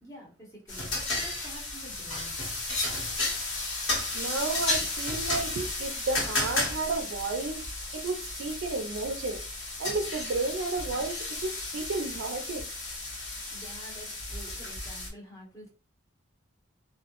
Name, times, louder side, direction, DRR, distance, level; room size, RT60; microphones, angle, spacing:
voice 1, 0.0-2.4 13.5-15.7, equal, 15° left, 0.7 m, -48 dB
sound 1, 0.7-15.1, left 2 dB, 65° left, 1.0 m, -33 dB
voice 2, 4.1-7.6 7.9-9.4 9.8-12.6, right 3 dB, 70° right, 0.4 m, -32 dB
2.2 x 2.0 x 2.8 m
head